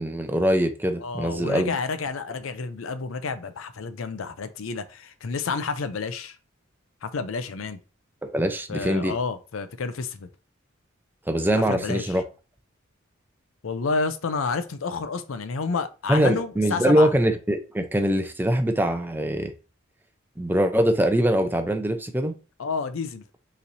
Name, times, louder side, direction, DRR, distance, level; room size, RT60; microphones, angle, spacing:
voice 1, 0.0-1.8 8.2-9.1 11.3-12.2 16.1-19.5 20.4-22.3, right 1 dB, 10° right, 0.5 m, -23 dB
voice 2, 1.0-6.4 7.0-7.8 8.7-10.3 11.7-12.1 13.6-17.1 22.6-23.2, left 4 dB, 90° left, 0.5 m, -30 dB
5.5 x 3.2 x 2.7 m
head